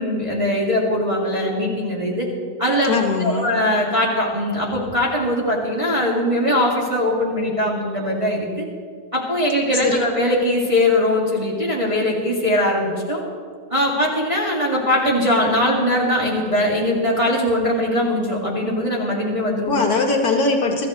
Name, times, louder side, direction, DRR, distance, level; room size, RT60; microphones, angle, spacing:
voice 1, 0.0-2.3 2.6-2.9 3.2-8.6 9.1-13.2 13.7-19.7, left 1 dB, 20° right, -4 dB, 2.0 m, -21 dB
voice 2, 2.9-3.5 9.8-10.1 19.7-20.9, left 3 dB, 65° left, 1 dB, 1.7 m, -20 dB
24.0 x 13.5 x 3.1 m, 2.1 s
omnidirectional pair, 1.8 m